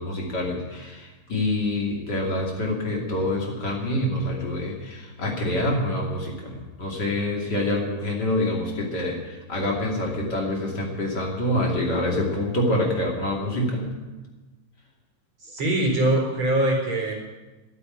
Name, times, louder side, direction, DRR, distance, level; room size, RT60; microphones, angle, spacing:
voice 1, 0.0-13.9, left 1 dB, 30° left, -1 dB, 2.8 m, -26 dB
voice 2, 15.4-17.1, right 1 dB, 40° right, -1 dB, 4.9 m, -23 dB
12.5 x 8.6 x 9.7 m, 1.2 s
omnidirectional pair, 3.9 m